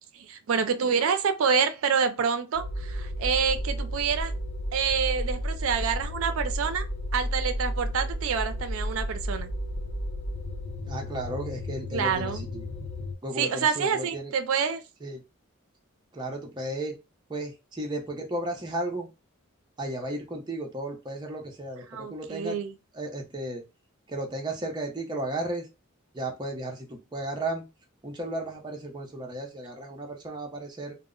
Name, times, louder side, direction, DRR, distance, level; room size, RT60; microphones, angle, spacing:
voice 1, 0.1-4.3 4.7-6.9 7.1-9.5 11.9-12.4 13.4-14.8 21.9-22.7, right 6 dB, 75° right, 0.4 m, -27 dB
sound 1, 2.6-13.2, equal, 85° left, 0.5 m, -33 dB
voice 2, 10.9-12.6 13.2-14.3 15.0-15.2 16.1-17.0 17.3-19.1 19.8-22.6 22.9-23.6 24.1-25.7 26.1-27.6 28.0-30.9, right 1 dB, 20° right, 0.6 m, -34 dB
2.0 x 2.0 x 3.6 m
head